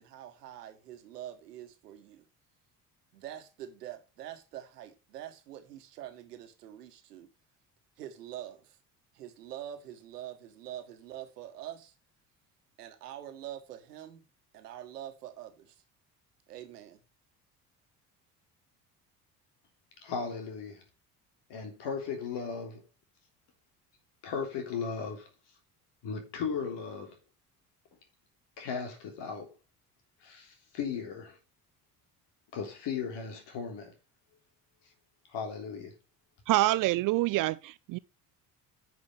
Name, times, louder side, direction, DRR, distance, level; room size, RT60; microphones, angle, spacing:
voice 1, 0.0-2.2 3.1-7.3 8.0-8.8 9.1-11.9 12.8-14.2 14.5-15.7 16.5-17.0, right 11 dB, 75° right, 1.6 m, -45 dB
voice 2, 20.0-20.8 21.5-22.8 24.2-25.3 26.0-27.2 28.6-29.5 30.2-31.4 32.5-33.9 35.3-35.9, left 6 dB, 55° left, 3.5 m, -36 dB
voice 3, 36.5-38.0, right 17 dB, 45° right, 0.5 m, -26 dB
9.6 x 6.1 x 5.3 m
figure-of-eight pair, 55°, 48 cm